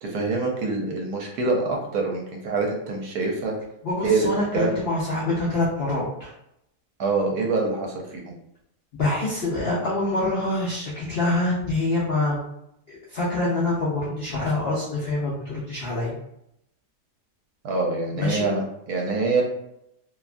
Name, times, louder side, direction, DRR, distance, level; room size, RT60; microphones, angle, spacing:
voice 1, 0.0-3.6 4.0-4.7 7.0-8.4 17.6-19.4, right 3 dB, 70° right, 0 dB, 1.1 m, -25 dB
voice 2, 3.8-6.3 9.0-12.4 12.9-16.2 18.1-18.5, left 2 dB, 70° left, -6 dB, 0.5 m, -25 dB
2.8 x 2.3 x 2.4 m, 0.80 s
omnidirectional pair, 1.8 m